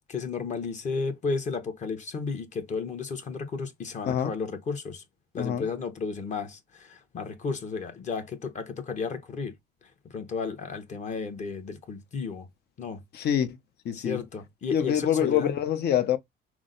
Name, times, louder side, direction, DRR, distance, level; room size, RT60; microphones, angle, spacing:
voice 1, 0.1-5.0 5.3-9.5 10.1-12.5 12.8-13.0 13.9-15.5, left 5 dB, 35° left, 1.1 m, -33 dB
voice 2, 13.1-13.6 13.9-14.2 14.7-16.2, left 9 dB, 50° left, 0.8 m, -25 dB
6.0 x 2.0 x 3.8 m
cardioid pair, 160°, 20 cm